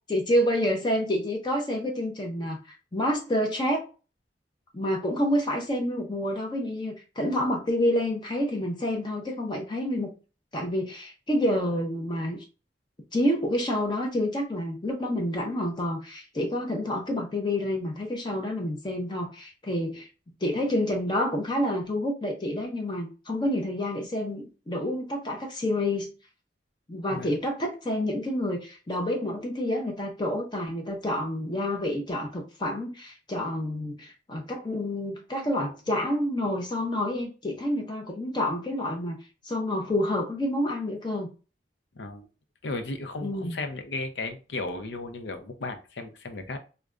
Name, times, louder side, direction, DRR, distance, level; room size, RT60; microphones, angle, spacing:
voice 1, 0.1-3.8 4.7-10.1 10.5-12.4 13.1-20.1 20.4-26.1 26.9-39.2 39.4-41.3 43.2-43.6, left 1 dB, 25° left, 0.6 m, -28 dB
voice 2, 41.9-42.3 42.6-46.6, left 2 dB, 85° left, 0.6 m, -35 dB
4.8 x 2.2 x 2.4 m
head